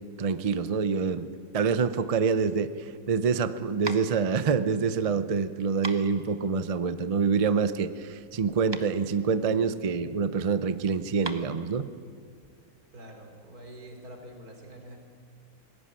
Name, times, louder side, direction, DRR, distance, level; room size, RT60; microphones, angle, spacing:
voice 1, 0.2-1.3 1.5-2.7 3.1-11.9, right 5 dB, 45° right, 12 dB, 0.4 m, -26 dB
sound 1, 3.8-12.8, right 2 dB, 20° right, 0.9 m, -43 dB
voice 2, 12.9-15.0, right 1 dB, 75° right, 3 dB, 3.8 m, -46 dB
20.0 x 16.5 x 10.0 m, 2.2 s
omnidirectional pair, 1.6 m